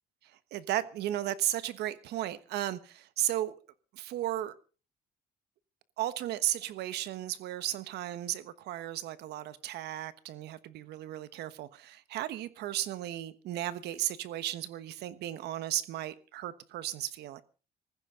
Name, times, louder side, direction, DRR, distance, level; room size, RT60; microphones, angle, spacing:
voice 1, 0.2-3.6 3.9-4.6 6.0-17.4, right 13 dB, 75° right, 1.3 m, -35 dB
20.0 x 15.0 x 3.8 m
cardioid pair, 110°, 17 cm